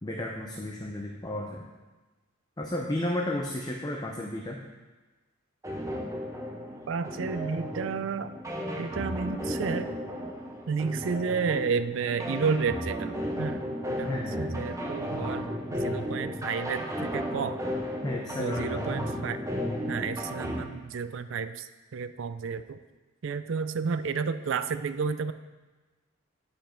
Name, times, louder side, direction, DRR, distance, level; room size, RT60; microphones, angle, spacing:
voice 1, 0.0-1.6 2.6-4.6 14.1-14.4 18.0-18.9, left 1 dB, 20° left, 0 dB, 0.6 m, -33 dB
sound 1, 5.6-20.6, equal, 15° right, 0.8 m, -34 dB
voice 2, 6.9-8.3 8.8-9.9 10.7-13.6 13.9-17.6 18.4-19.4 19.9-22.8 23.2-25.3, right 5 dB, 65° right, 11 dB, 0.4 m, -31 dB
10.0 x 5.3 x 4.4 m, 1.2 s
head